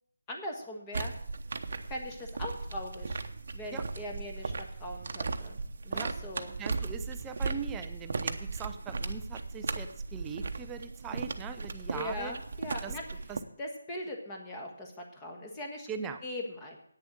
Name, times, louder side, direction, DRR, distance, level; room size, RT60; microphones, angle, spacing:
voice 1, 0.3-1.1 1.9-3.2 3.5-6.5 11.9-13.0 13.6-15.9 16.2-16.8, left 1 dB, 15° left, 1 dB, 1.5 m, -40 dB
sound 1, 0.9-13.4, right 4 dB, 50° right, 0.9 m, -37 dB
voice 2, 6.6-12.4 12.8-13.0 13.3-13.4 15.9-16.2, right 6 dB, 10° right, 6 dB, 0.5 m, -41 dB
9.2 x 6.9 x 8.8 m, 0.67 s
figure-of-eight pair, 170°, 0 cm